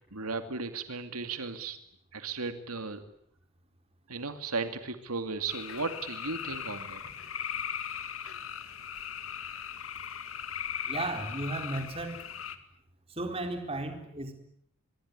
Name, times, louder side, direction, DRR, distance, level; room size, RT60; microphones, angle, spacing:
voice 1, 0.1-1.8 2.1-3.0 4.1-7.0, right 4 dB, 90° right, 8 dB, 2.5 m, -35 dB
sound 1, 5.5-12.6, left 8 dB, 70° left, 2.2 m, -38 dB
voice 2, 10.9-12.2 13.1-14.3, right 2 dB, 25° right, 5 dB, 4.2 m, -34 dB
25.0 x 23.0 x 9.7 m, 0.69 s
head